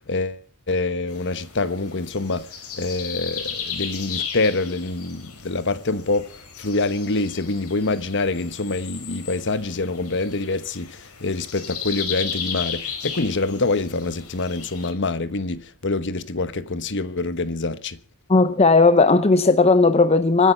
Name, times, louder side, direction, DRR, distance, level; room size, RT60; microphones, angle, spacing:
voice 1, 0.1-0.4 0.7-2.5 2.8-18.0, left 3 dB, 55° left, 1.2 m, -25 dB
sound 1, 1.1-14.9, left 7 dB, 90° left, 5.1 m, -35 dB
voice 2, 18.3-20.5, left 3 dB, 30° left, 0.7 m, -16 dB
24.5 x 10.5 x 5.5 m
head